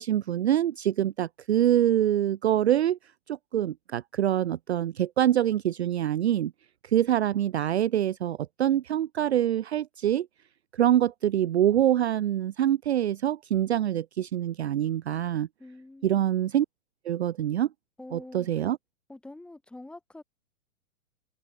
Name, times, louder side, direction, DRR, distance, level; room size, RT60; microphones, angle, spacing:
voice 1, 0.0-3.0 3.3-6.5 6.8-10.3 10.7-15.5 16.0-16.7 17.0-17.7 18.1-18.8, right 11 dB, 50° right, 0.7 m, -25 dB
voice 2, 15.6-16.3 18.0-18.8 19.1-20.2, left 2 dB, ahead, 6.6 m, -46 dB
open air
hypercardioid pair, 180°, 43 cm